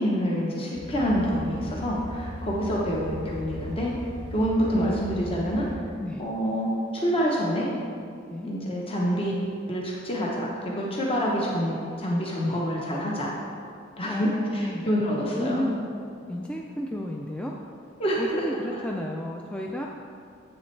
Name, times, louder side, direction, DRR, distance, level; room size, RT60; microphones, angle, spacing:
voice 1, 0.0-3.9 4.3-5.7 6.2-7.7 8.4-9.3 9.7-13.3 14.0-15.6 18.0-18.5 18.7-18.8, equal, 30° left, -3 dB, 0.9 m, -27 dB
sound 1, 0.7-5.7, equal, 65° left, 1.1 m, -38 dB
voice 2, 4.8-5.4 6.0-6.2 8.3-8.5 12.4-12.6 14.1-14.8 15.4-15.8 16.3-17.5 18.2-19.9, left 1 dB, 5° left, -1 dB, 0.3 m, -32 dB
7.6 x 7.1 x 3.2 m, 2.4 s
head